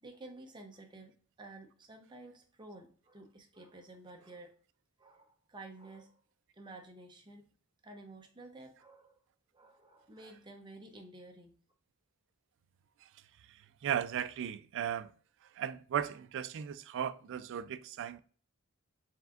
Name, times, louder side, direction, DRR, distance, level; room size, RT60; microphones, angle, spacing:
voice 1, 0.0-4.6 5.0-6.2 6.5-7.4 7.8-9.2 9.5-11.5, right 2 dB, 20° right, 0.7 m, -52 dB
voice 2, 13.5-15.1 15.5-18.2, right 9 dB, 60° right, 0.3 m, -36 dB
4.3 x 3.4 x 2.4 m
head